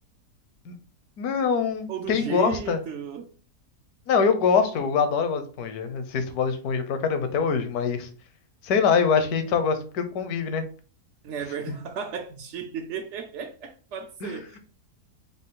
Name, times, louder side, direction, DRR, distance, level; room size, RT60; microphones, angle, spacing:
voice 1, 1.2-2.8 4.1-8.1 8.6-10.6 14.2-14.6, left 6 dB, 70° left, 1.2 m, -24 dB
voice 2, 1.9-3.3 11.2-14.6, right 7 dB, 75° right, 0.6 m, -34 dB
5.1 x 2.4 x 3.7 m
omnidirectional pair, 1.7 m